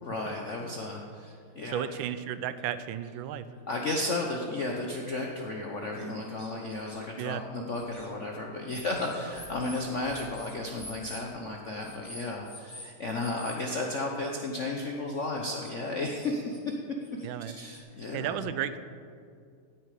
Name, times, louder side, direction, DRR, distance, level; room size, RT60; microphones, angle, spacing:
voice 1, 0.0-1.8 3.7-16.8 17.4-18.4, left 2 dB, 45° left, 0 dB, 1.0 m, -34 dB
sound 1, 1.2-1.3 1.7-1.8 2.6-2.7 3.0-3.1 3.7-3.8 4.7-4.8 5.2-5.3 6.0-7.0 7.7-8.1 8.7-11.3 11.8-12.9 13.1-13.6 15.4-15.7 16.1-16.8 17.0-17.8, left 1 dB, 15° left, 1.8 m, -47 dB
voice 2, 1.7-3.4 7.2-7.4 17.2-17.6 18.1-18.8, right 10 dB, 75° right, 12 dB, 1.4 m, -33 dB
17.0 x 9.2 x 4.9 m, 2.3 s
omnidirectional pair, 2.3 m